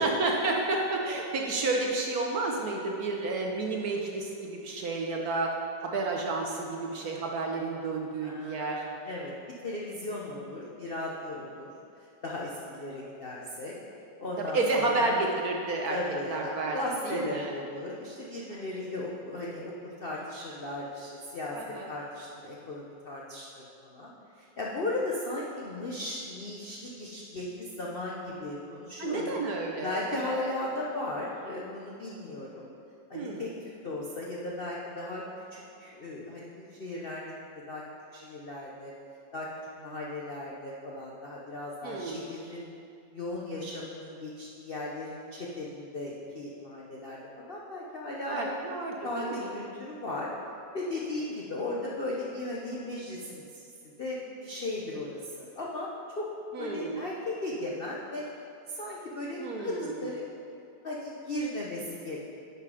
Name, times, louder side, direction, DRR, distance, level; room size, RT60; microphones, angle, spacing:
voice 1, 0.0-5.5 5.8-8.8 14.4-16.0 16.3-16.8 17.0-17.5 18.5-18.6 21.5-21.9 29.0-30.4 33.1-33.5 41.8-42.3 48.3-49.5 56.5-57.0 59.4-60.1, right 3 dB, 65° right, 0 dB, 1.0 m, -31 dB
voice 2, 8.2-9.3 9.6-11.7 12.0-13.7 14.2-15.2 15.9-21.6 21.9-24.1 24.4-29.3 29.8-32.7 33.1-35.2 35.5-37.3 37.7-37.8 38.1-38.9 39.3-39.5 39.8-42.7 43.1-48.5 49.0-50.3 50.7-53.6 54.0-55.9 56.2-56.3 56.5-58.2 58.7-60.4 60.8-62.2, left 2 dB, 60° left, -4 dB, 0.6 m, -36 dB
9.5 x 5.6 x 4.9 m, 2.6 s
omnidirectional pair, 2.1 m